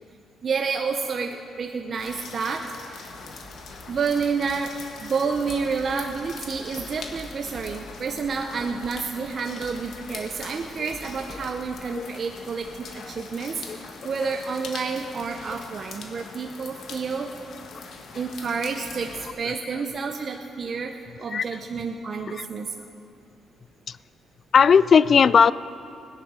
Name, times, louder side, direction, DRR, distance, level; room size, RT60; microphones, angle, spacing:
voice 1, 0.4-3.0 3.9-4.7 5.0-17.3 18.1-20.9 21.2-22.9, right 5 dB, 50° right, 4 dB, 0.8 m, -29 dB
sound 1, 2.0-19.3, left 4 dB, 65° left, 1.5 m, -42 dB
sound 2, 3.4-11.7, equal, 5° right, 1.6 m, -48 dB
voice 2, 24.5-25.5, left 6 dB, 50° left, 18 dB, 0.3 m, -17 dB
17.0 x 10.0 x 6.3 m, 2.6 s
cardioid pair, 90°, 0 cm